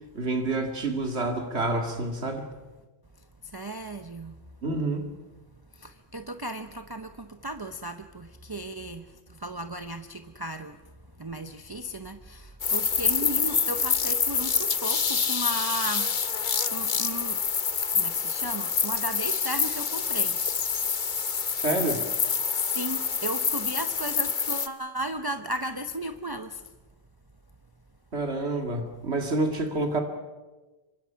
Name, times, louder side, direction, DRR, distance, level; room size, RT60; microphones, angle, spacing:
voice 1, 0.1-2.4 4.6-5.0 21.6-22.1 28.1-30.0, right 2 dB, 90° right, 4 dB, 2.6 m, -28 dB
voice 2, 3.5-4.4 5.7-10.8 11.2-16.1 16.7-17.4 17.9-20.4 22.5-26.6, right 1 dB, 25° right, 7 dB, 0.8 m, -35 dB
sound 1, 12.6-24.7, left 6 dB, 50° left, 1.1 m, -27 dB
26.0 x 24.5 x 5.8 m, 1.2 s
omnidirectional pair, 1.1 m